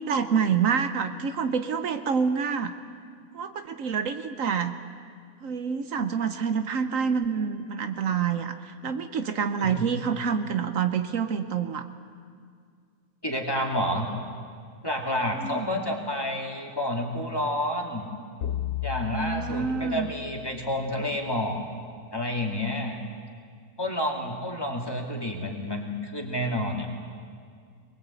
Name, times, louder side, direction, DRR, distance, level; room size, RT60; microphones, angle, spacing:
voice 1, 0.1-2.7 3.3-4.7 5.4-11.9 15.4-15.8 19.1-20.1, right 6 dB, 70° right, 9 dB, 1.3 m, -27 dB
voice 2, 13.2-14.1 14.8-18.1 18.8-21.6 22.1-23.0 23.8-26.9, left 1 dB, 15° left, 1 dB, 2.3 m, -29 dB
sound 1, 18.4-20.9, left 11 dB, 60° left, 1.0 m, -34 dB
22.5 x 20.5 x 8.3 m, 2.2 s
omnidirectional pair, 1.5 m